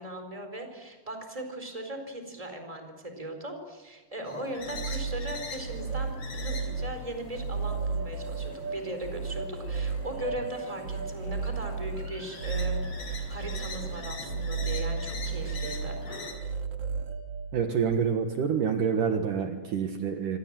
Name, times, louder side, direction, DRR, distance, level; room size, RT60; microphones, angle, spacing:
voice 1, 0.0-16.0, right 1 dB, 10° right, 5 dB, 4.3 m, -39 dB
sound 1, 4.2-16.3, left 3 dB, 40° left, 5.7 m, -44 dB
sound 2, 4.6-18.0, right 4 dB, 50° right, 2.4 m, -34 dB
voice 2, 17.5-20.4, right 7 dB, 65° right, 5 dB, 2.9 m, -27 dB
26.5 x 25.5 x 7.6 m, 1.1 s
omnidirectional pair, 4.3 m